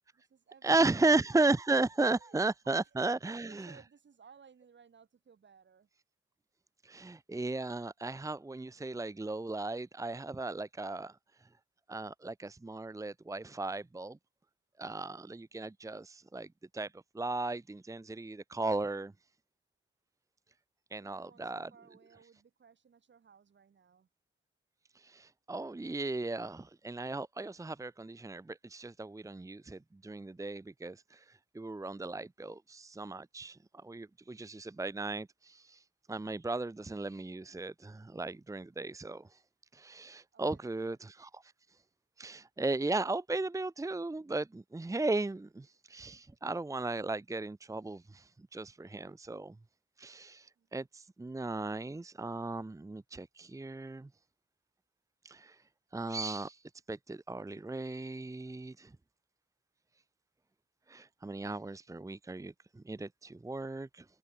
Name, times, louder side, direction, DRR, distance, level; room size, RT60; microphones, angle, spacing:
voice 1, 0.1-1.2 2.2-5.9 21.0-24.1 40.3-41.0 50.6-50.7, right 6 dB, 70° right, 7.2 m, -60 dB
voice 2, 0.6-3.7 6.8-11.1 11.9-14.2 14.8-16.5 16.7-19.1 20.9-21.7 24.9-31.2 31.5-35.8 36.1-39.3 39.7-41.5 42.2-49.5 50.0-54.1 55.2-55.6 55.9-56.6 56.9-58.9 60.9-64.0, right 2 dB, 15° right, 0.8 m, -35 dB
open air
wide cardioid pair, 105°, 20 cm